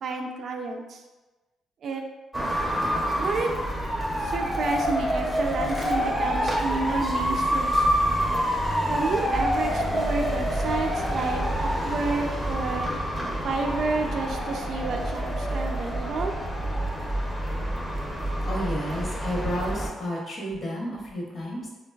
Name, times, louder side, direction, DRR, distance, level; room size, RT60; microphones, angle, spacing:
voice 1, 0.0-1.0 1.8-2.1 3.2-3.6 4.2-8.2 8.9-12.9 13.4-16.3, right 3 dB, 60° right, 2 dB, 0.3 m, -30 dB
sound 1, 2.3-19.9, equal, ahead, 0.5 m, -27 dB
voice 2, 18.4-21.7, equal, 40° left, -3 dB, 0.9 m, -31 dB
3.1 x 2.2 x 2.2 m, 1.2 s
cardioid pair, 90°, 0 cm